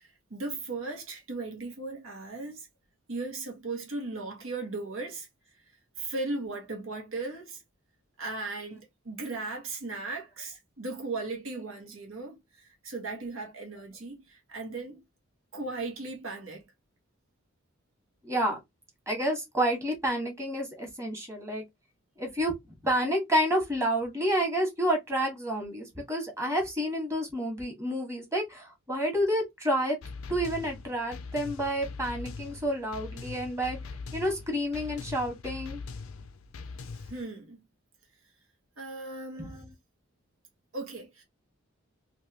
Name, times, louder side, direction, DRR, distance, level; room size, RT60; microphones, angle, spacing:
voice 1, 0.0-2.7 3.1-5.3 6.0-7.6 8.2-15.0 15.5-16.6 37.1-37.6 38.8-39.6 40.7-41.2, right 3 dB, 75° right, 1.4 m, -37 dB
voice 2, 18.2-18.6 19.1-21.6 22.2-22.5 22.8-30.0 30.3-33.8 34.1-35.8 39.4-39.7, equal, 15° right, 1.4 m, -29 dB
sound 1, 30.0-37.2, left 4 dB, 90° left, 0.5 m, -41 dB
3.3 x 2.7 x 2.8 m
head